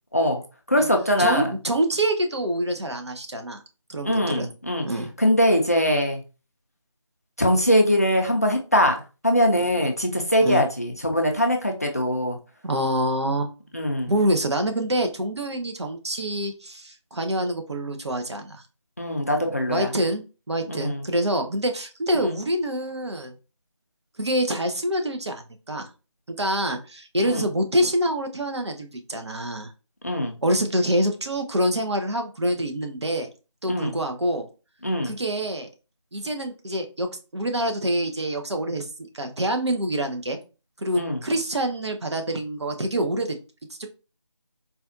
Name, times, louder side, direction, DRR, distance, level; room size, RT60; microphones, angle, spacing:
voice 1, 0.1-0.4 0.7-1.5 4.0-4.9 5.2-6.2 7.4-12.4 13.7-14.1 19.0-19.9 20.7-21.0 22.1-22.4 27.2-27.5 30.0-30.3 33.7-34.0 34.8-35.1 41.0-41.2, equal, 30° left, 2 dB, 0.4 m, -22 dB
voice 2, 1.2-3.6 3.9-4.5 4.8-5.1 9.6-9.7 10.4-10.6 12.6-13.5 14.0-18.6 19.7-23.3 24.2-25.9 26.3-29.7 30.4-33.3 33.6-34.5 35.0-35.7 36.1-38.9 39.1-40.4 40.8-43.4 43.8-43.9, right 1 dB, 60° right, 5 dB, 0.8 m, -26 dB
4.1 x 2.3 x 2.5 m, 0.32 s
figure-of-eight pair, 170°, 16 cm